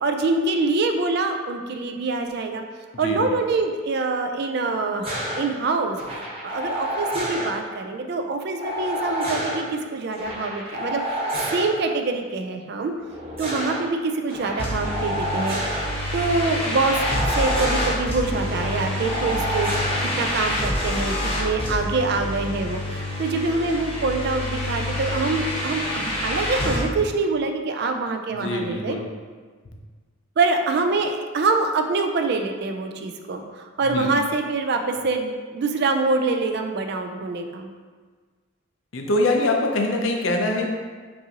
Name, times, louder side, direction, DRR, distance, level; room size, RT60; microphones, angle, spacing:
voice 1, 0.0-2.6 3.0-5.1 5.4-11.2 11.5-12.9 13.4-17.0 17.4-29.0 30.4-37.7, right 3 dB, 50° right, 5 dB, 0.3 m, -25 dB
sound 1, 5.0-5.4 5.9-7.5 8.6-9.6 10.1-11.7 13.0-13.8 14.3-15.8 16.9-17.9 18.5-20.0 21.3-21.7, equal, 30° right, 1.2 m, -29 dB
sound 2, 14.6-26.8, left 1 dB, 25° left, 0.8 m, -27 dB
voice 2, 28.3-29.0 29.6-29.7 33.9-34.1 38.9-40.7, left 2 dB, 65° left, 1 dB, 0.5 m, -23 dB
5.4 x 2.6 x 2.8 m, 1.5 s
head